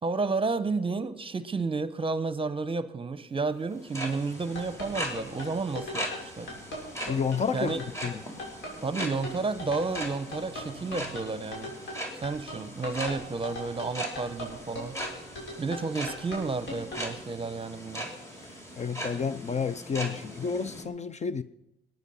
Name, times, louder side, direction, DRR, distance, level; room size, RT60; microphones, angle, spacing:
voice 1, 0.0-6.5 7.5-7.8 8.8-11.7 12.2-14.9 15.6-18.1, right 4 dB, 25° right, 0.9 m, -31 dB
sound 1, 3.7-20.8, equal, 15° left, 3.3 m, -40 dB
sound 2, 4.3-17.1, left 1 dB, 70° left, 6.5 m, -39 dB
voice 2, 7.1-8.2 18.8-21.4, left 6 dB, 35° left, 0.6 m, -30 dB
19.5 x 9.3 x 5.6 m
cardioid pair, 90°, 20 cm